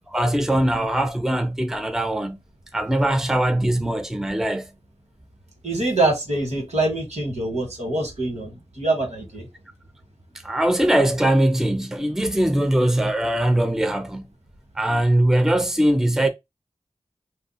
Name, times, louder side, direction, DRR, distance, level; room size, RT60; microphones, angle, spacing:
voice 1, 0.1-2.4 2.7-4.7 10.4-14.3 14.8-16.3, right 1 dB, 5° right, 0.5 m, -21 dB
voice 2, 5.6-9.5, right 2 dB, 80° right, 1.5 m, -24 dB
2.6 x 2.3 x 4.1 m
wide cardioid pair, 55°, 12 cm